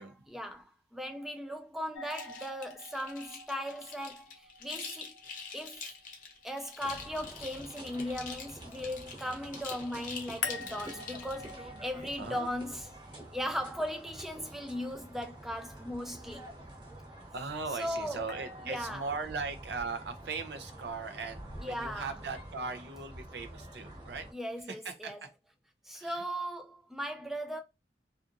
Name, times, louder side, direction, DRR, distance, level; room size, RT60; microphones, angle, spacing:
voice 1, 0.0-5.1 5.5-5.9 6.4-12.9 13.3-16.5 17.8-18.2 18.6-19.1 21.6-22.1 24.3-25.2 25.8-27.6, equal, ahead, 0.3 m, -38 dB
sound 1, 1.9-6.9 10.4-14.5 18.3-19.5, left 6 dB, 80° left, 0.4 m, -46 dB
sound 2, 2.0-11.5, left 5 dB, 50° left, 0.7 m, -46 dB
sound 3, 6.8-24.3, right 1 dB, 25° right, 1.0 m, -48 dB
voice 2, 12.2-12.5 17.3-24.3 24.7-25.1 25.9-26.2, right 4 dB, 65° right, 0.6 m, -39 dB
2.7 x 2.5 x 2.5 m
head